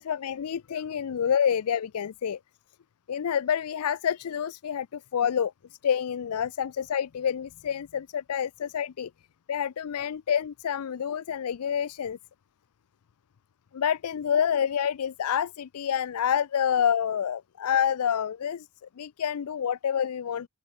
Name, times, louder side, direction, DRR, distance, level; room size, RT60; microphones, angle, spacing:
voice 1, 0.0-2.4 3.1-5.5 5.8-9.1 9.5-12.2 13.7-18.7 19.0-20.5, left 8 dB, 85° left, 0.4 m, -28 dB
open air
head